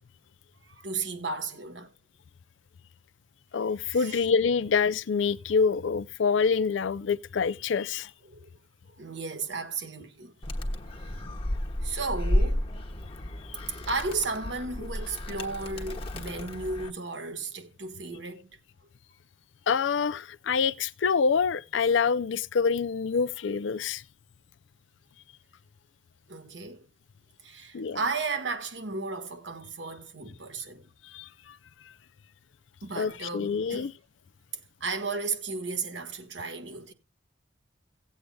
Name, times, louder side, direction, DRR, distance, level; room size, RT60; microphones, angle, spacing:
voice 1, 0.7-1.9 3.8-4.3 8.2-8.5 9.0-10.3 11.0-11.1 11.8-12.6 13.9-18.5 26.3-26.8 27.4-30.8 32.8-33.9 34.8-36.9, right 4 dB, 70° right, 1.4 m, -34 dB
voice 2, 3.5-8.1 19.7-24.0 27.7-28.0 31.1-31.3 33.0-33.9, left 5 dB, 80° left, 0.5 m, -26 dB
Animal, 10.4-16.9, left 1 dB, 30° left, 1.1 m, -32 dB
17.5 x 8.2 x 2.3 m
head